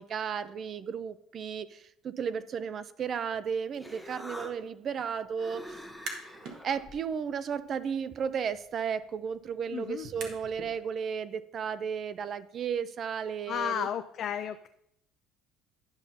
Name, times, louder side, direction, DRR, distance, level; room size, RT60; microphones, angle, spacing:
voice 1, 0.0-5.8 6.6-13.9, right 7 dB, 45° right, 15 dB, 0.4 m, -34 dB
Human voice, 3.3-8.5, equal, ahead, 0.7 m, -48 dB
sound 1, 5.9-6.6 7.0-10.7, right 4 dB, 70° right, 1.2 m, -46 dB
voice 2, 9.7-10.1 13.5-14.7, left 9 dB, 50° left, 9 dB, 0.3 m, -33 dB
11.0 x 5.6 x 2.7 m, 0.76 s
cardioid pair, 110°, 0 cm